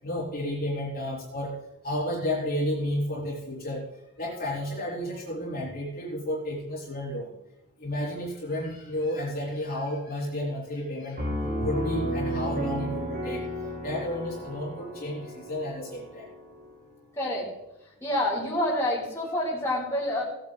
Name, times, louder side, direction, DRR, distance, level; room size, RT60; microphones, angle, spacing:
voice 1, 0.0-1.6 1.8-3.9 4.2-7.4 7.8-11.2 11.6-13.5 13.8-16.3, left 1 dB, 40° left, -6 dB, 3.5 m, -32 dB
Piano, 11.2-16.7, right 1 dB, 45° right, 5.0 m, -33 dB
voice 2, 17.1-17.5 18.0-20.2, left 1 dB, 10° left, -6 dB, 4.1 m, -27 dB
18.5 x 9.0 x 3.2 m, 0.89 s
head